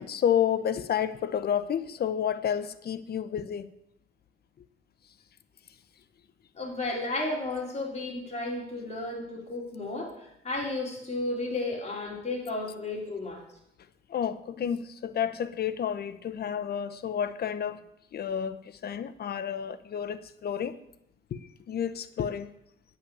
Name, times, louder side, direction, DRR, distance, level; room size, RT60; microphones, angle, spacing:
voice 1, 0.0-3.7 14.1-17.8 18.1-20.8 21.3-22.5, left 9 dB, 50° left, 0.8 m, -30 dB
voice 2, 6.6-13.4 17.1-17.2, left 2 dB, 35° left, 3.8 m, -33 dB
9.5 x 5.8 x 8.4 m
cardioid pair, 90°, 20 cm